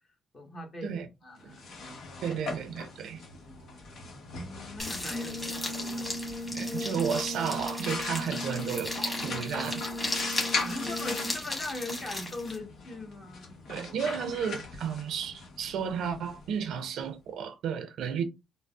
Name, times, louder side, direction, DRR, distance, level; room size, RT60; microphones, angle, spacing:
voice 1, 0.3-0.9 1.2-2.4 3.3-3.6 4.2-6.1 10.6-13.9, left 2 dB, 40° left, 1.3 m, -41 dB
sound 1, 1.4-17.1, left 3 dB, 75° left, 1.0 m, -40 dB
voice 2, 2.2-3.2 6.5-9.9 13.7-18.2, right 7 dB, 75° right, 0.5 m, -33 dB
sound 2, 4.8-12.6, left 2 dB, 20° left, 1.4 m, -37 dB
Brass instrument, 5.1-11.5, equal, ahead, 0.5 m, -38 dB
3.8 x 2.0 x 2.3 m
cardioid pair, 90°, 0 cm